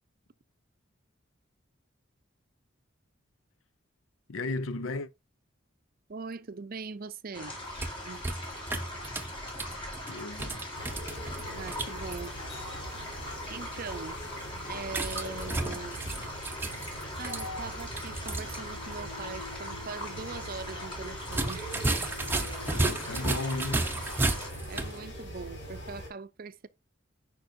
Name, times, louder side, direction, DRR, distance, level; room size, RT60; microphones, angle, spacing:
voice 1, 4.3-5.1 10.1-10.7 22.7-23.9, left 3 dB, 80° left, 0.6 m, -35 dB
voice 2, 6.1-7.6 8.0-8.2 11.5-12.6 12.9-13.0 13.5-14.2 14.7-16.1 17.2-21.7 24.7-26.7, right 4 dB, 45° right, 0.5 m, -41 dB
sound 1, 7.3-24.5, left 1 dB, 25° left, 3.5 m, -41 dB
sound 2, 7.5-12.3 14.9-18.6 18.9-19.0 21.2-25.0, right 2 dB, 10° right, 0.7 m, -33 dB
sound 3, 10.7-26.1, equal, 60° left, 4.6 m, -42 dB
9.1 x 5.3 x 2.6 m
head